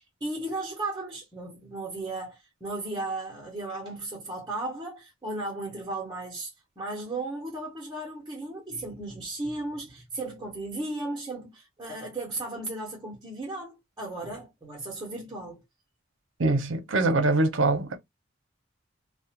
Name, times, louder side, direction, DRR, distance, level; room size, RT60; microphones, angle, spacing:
voice 1, 0.0-15.6, right 2 dB, 20° right, 0.7 m, -35 dB
voice 2, 16.4-18.0, right 2 dB, 70° right, 0.6 m, -23 dB
2.3 x 2.1 x 2.8 m
head